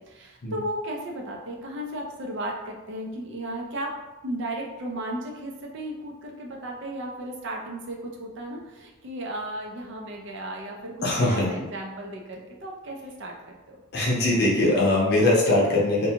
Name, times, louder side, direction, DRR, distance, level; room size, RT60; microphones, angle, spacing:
voice 1, 0.0-3.9 4.2-13.8, right 1 dB, 55° right, 0 dB, 0.5 m, -35 dB
voice 2, 11.0-11.5 13.9-16.1, left 2 dB, 50° left, -5 dB, 0.7 m, -21 dB
2.5 x 2.2 x 2.7 m, 1.1 s
head